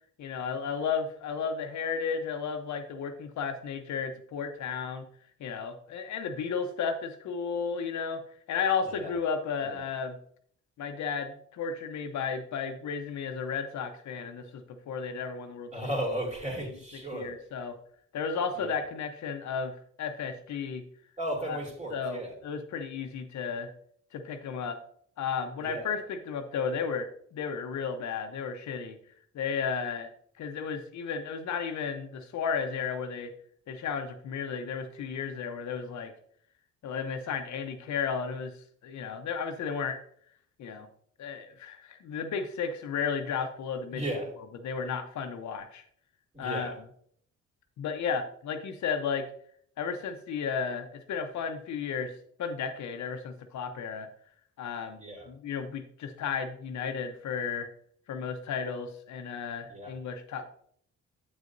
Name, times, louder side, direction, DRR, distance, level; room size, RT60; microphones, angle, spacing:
voice 1, 0.2-5.0 5.4-8.2 8.5-10.2 10.8-15.7 17.1-17.8 18.1-20.8 21.5-21.6 21.9-23.7 24.1-24.8 25.2-29.0 29.3-30.1 30.4-33.3 33.7-36.1 36.8-38.5 38.8-40.0 40.6-40.9 41.2-44.0 44.6-45.8 46.4-46.7 47.8-49.3 49.8-52.1 52.4-54.1 54.6-55.0 55.3-57.7 58.1-60.5, left 6 dB, 70° left, 6 dB, 0.8 m, -33 dB
voice 2, 15.7-17.3 18.6-18.9 21.2-22.4 25.6-25.9 43.9-44.3 46.3-46.8 54.9-55.3 59.7-59.9, right 1 dB, 25° right, -1 dB, 2.6 m, -35 dB
8.0 x 6.5 x 2.6 m, 0.62 s
cardioid pair, 90°, 30 cm